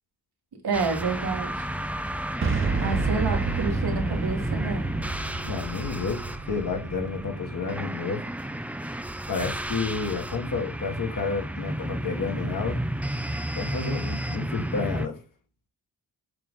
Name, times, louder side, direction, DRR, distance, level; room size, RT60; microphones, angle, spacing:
voice 1, 0.6-1.7 2.8-4.9, right 4 dB, 80° right, 1.8 m, -29 dB
sound 1, 0.7-15.1, right 1 dB, 5° right, 0.4 m, -32 dB
Boom, 2.4-8.3, right 4 dB, 30° right, 0.9 m, -30 dB
voice 2, 5.4-8.3 9.3-12.8 13.5-15.2, left 4 dB, 55° left, 1.6 m, -30 dB
6.8 x 3.9 x 3.6 m
wide cardioid pair, 115°, 38 cm